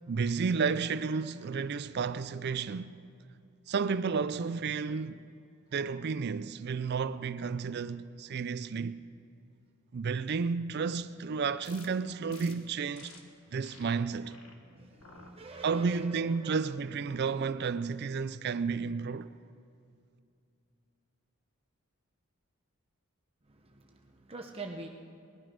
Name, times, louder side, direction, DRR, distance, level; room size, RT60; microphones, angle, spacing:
voice 1, 0.1-3.0 3.7-5.2 5.7-9.0 9.9-13.1 13.5-14.4 15.6-19.3, right 5 dB, 45° right, 0.4 m, -32 dB
sound 1, 11.6-11.9 12.3-12.5 12.9-13.2 13.6-13.9 14.3-14.5 15.0-15.3 15.8-16.2, left 5 dB, 65° left, 1.5 m, -53 dB
voice 2, 13.4-14.2 14.6-16.6 23.4-24.9, right 2 dB, 25° right, 0.8 m, -46 dB
19.5 x 12.5 x 5.1 m
head